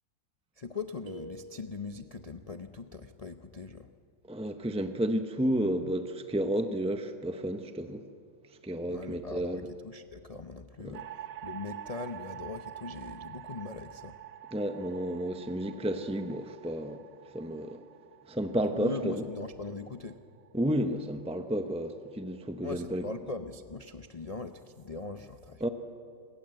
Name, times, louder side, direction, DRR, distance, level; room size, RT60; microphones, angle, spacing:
voice 1, 0.6-3.9 8.9-14.2 18.8-20.2 22.6-25.7, left 4 dB, 55° left, 8 dB, 0.4 m, -41 dB
sound 1, 1.1-2.2, right 2 dB, 80° right, 2.3 m, -48 dB
voice 2, 4.3-8.0 8.6-9.7 10.8-11.0 14.5-17.0 17.3-17.8 18.3-19.2 20.5-23.0 25.6-25.7, right 1 dB, 5° right, 7 dB, 0.4 m, -31 dB
sound 2, 10.9-21.3, right 11 dB, 60° right, 1.1 m, -47 dB
27.0 x 21.5 x 7.8 m, 2.4 s
omnidirectional pair, 1.9 m